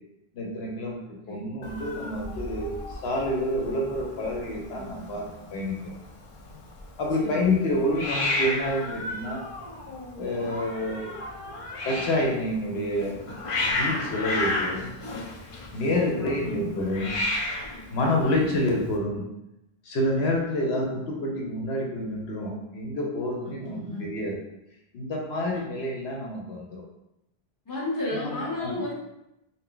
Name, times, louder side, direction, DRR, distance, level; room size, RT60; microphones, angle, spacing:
voice 1, 0.3-5.8 7.0-9.4 10.2-11.2 11.8-13.2 13.8-14.9 15.7-17.2 17.9-19.3 19.8-24.3 24.9-26.8 28.1-28.8, left 1 dB, 80° left, -1 dB, 0.9 m, -28 dB
Hiss, 1.6-19.0, left 2 dB, 55° left, 0.4 m, -33 dB
voice 2, 16.2-16.7 18.0-18.6 23.4-24.3 27.6-28.9, left 1 dB, 20° left, -6 dB, 0.8 m, -34 dB
2.7 x 2.2 x 3.7 m, 0.86 s
omnidirectional pair, 1.1 m